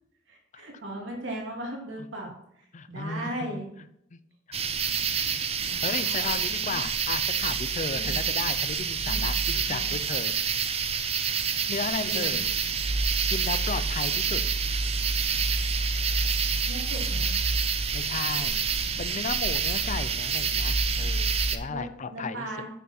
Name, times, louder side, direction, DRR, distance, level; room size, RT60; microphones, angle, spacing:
voice 1, 0.3-2.3 2.5-3.7 4.8-4.9 5.6-6.4 6.6-6.8 7.9-8.2 9.1-9.2 9.7-9.9 12.0-12.4 16.7-17.3 21.7-22.7, right 1 dB, 65° right, 0 dB, 2.6 m, -38 dB
voice 2, 2.7-3.6 4.5-4.6 5.8-10.3 11.7-12.5 13.3-14.4 17.0-17.3 17.9-18.7 19.0-22.5, left 4 dB, 40° left, 13 dB, 0.5 m, -34 dB
sound 1, 4.5-21.6, right 5 dB, 30° right, 0.6 m, -27 dB
9.3 x 6.0 x 4.3 m, 0.79 s
head